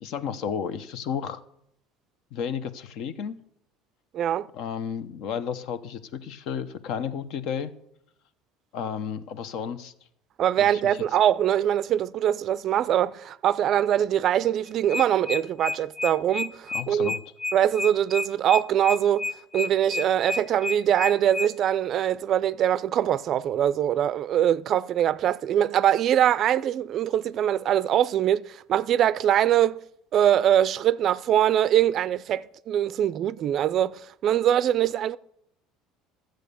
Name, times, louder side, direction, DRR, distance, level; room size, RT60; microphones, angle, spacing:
voice 1, 0.0-1.4 2.3-3.4 4.5-7.7 8.7-9.9 10.6-10.7 16.7-17.2, left 7 dB, 60° left, 0.9 m, -32 dB
voice 2, 4.1-4.5 10.4-17.1 17.5-29.8 30.1-35.2, right 10 dB, 45° right, 0.4 m, -23 dB
sound 1, 14.7-21.5, left 4 dB, 25° left, 0.9 m, -30 dB
13.0 x 7.8 x 6.9 m
cardioid pair, 140°, 0 cm